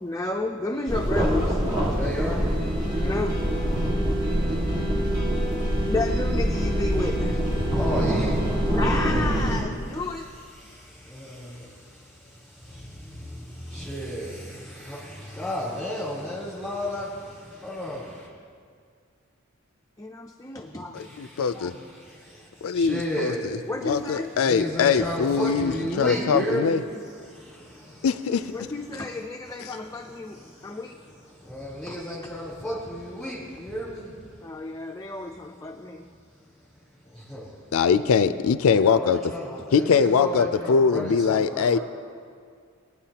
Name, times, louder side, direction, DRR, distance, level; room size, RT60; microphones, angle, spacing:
voice 1, 0.0-1.6 2.9-3.7 5.9-7.5 8.7-10.3 20.0-21.1 21.4-21.8 23.7-24.3 28.5-31.0 31.9-32.0 34.4-36.1 38.3-38.4 39.6-39.7, left 2 dB, 15° left, 2 dB, 0.4 m, -32 dB
sound 1, 0.9-9.6, equal, 20° right, 1.8 m, -24 dB
voice 2, 1.8-2.7 4.3-4.9 5.6-5.9 7.6-8.7 10.6-18.3 21.0-23.8 24.3-28.1 30.1-31.0 31.2-34.6 37.0-37.6 38.7-41.8, equal, ahead, -8 dB, 3.3 m, -34 dB
voice 3, 20.9-21.7 22.6-23.6 23.8-26.8 28.0-28.5 37.7-39.2 39.7-41.8, left 6 dB, 85° left, 12 dB, 0.4 m, -22 dB
20.0 x 9.6 x 2.9 m, 2.1 s
head